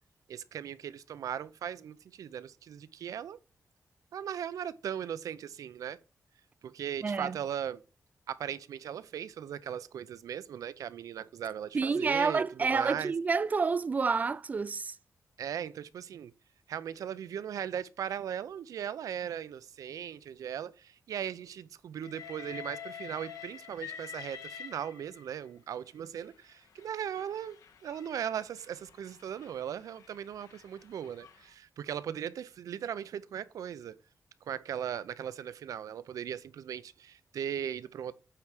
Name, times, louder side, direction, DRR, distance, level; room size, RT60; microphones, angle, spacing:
voice 1, 0.3-3.4 4.1-6.0 6.6-7.8 8.3-13.1 15.4-16.3 16.7-34.0 34.5-38.1, right 9 dB, 85° right, 0.6 m, -38 dB
voice 2, 7.0-7.4 11.7-15.0, right 4 dB, 30° right, 0.4 m, -29 dB
Train, 22.0-25.4 26.2-31.5, left 8 dB, 80° left, 1.4 m, -48 dB
8.7 x 4.7 x 5.1 m
wide cardioid pair, 170°, 6 cm